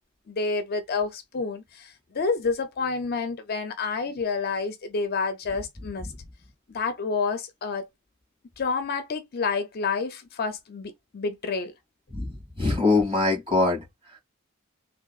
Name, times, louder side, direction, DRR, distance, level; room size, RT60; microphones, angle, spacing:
voice 1, 0.3-6.1 6.7-7.9 8.6-11.7, left 4 dB, 45° left, 0.5 m, -29 dB
voice 2, 6.0-6.3 12.1-14.2, left 3 dB, 25° right, 2.1 m, -24 dB
3.6 x 2.3 x 2.3 m
head